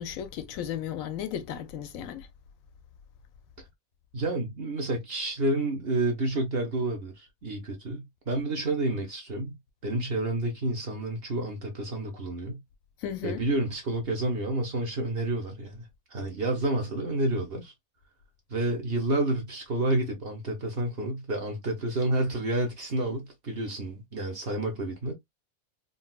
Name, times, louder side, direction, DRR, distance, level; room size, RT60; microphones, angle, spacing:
voice 1, 0.0-2.3 13.0-13.4, left 9 dB, 70° left, 0.9 m, -35 dB
voice 2, 4.1-9.6 9.8-12.6 13.2-17.7 18.5-25.1, right 2 dB, 50° right, 0.8 m, -29 dB
3.9 x 2.3 x 2.2 m
omnidirectional pair, 1.6 m